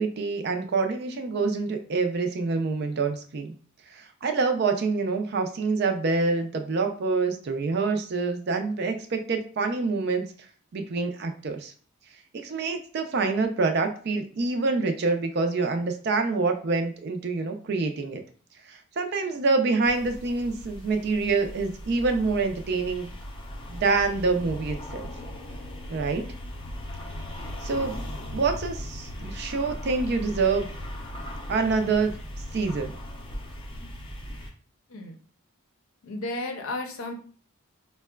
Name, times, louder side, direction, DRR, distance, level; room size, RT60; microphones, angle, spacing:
voice 1, 0.0-3.5 3.9-10.2 10.7-11.7 12.3-18.2 18.7-23.1 23.7-25.1 25.9-26.2 27.6-27.9 28.3-30.7 31.5-32.1 32.5-33.0, right 4 dB, 50° right, 6 dB, 0.4 m, -26 dB
sound 1, 19.8-34.5, left 1 dB, 25° left, 0.5 m, -38 dB
voice 2, 36.0-37.1, left 2 dB, 75° left, 4 dB, 0.6 m, -33 dB
4.5 x 2.1 x 2.2 m, 0.43 s
head